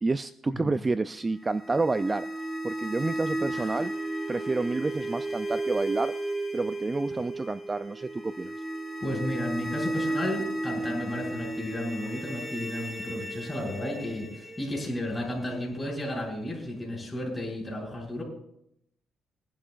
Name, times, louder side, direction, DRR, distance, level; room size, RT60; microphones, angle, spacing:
voice 1, 0.0-2.3 2.6-3.9 4.3-6.1 6.5-8.5, right 3 dB, 25° right, 13 dB, 0.3 m, -29 dB
sound 1, 1.4-16.3, right 1 dB, 5° right, 2.7 m, -34 dB
voice 2, 3.4-3.8 9.0-18.2, left 1 dB, 15° left, -1 dB, 5.9 m, -33 dB
21.5 x 11.0 x 2.5 m, 0.75 s
cardioid pair, 90°, 0 cm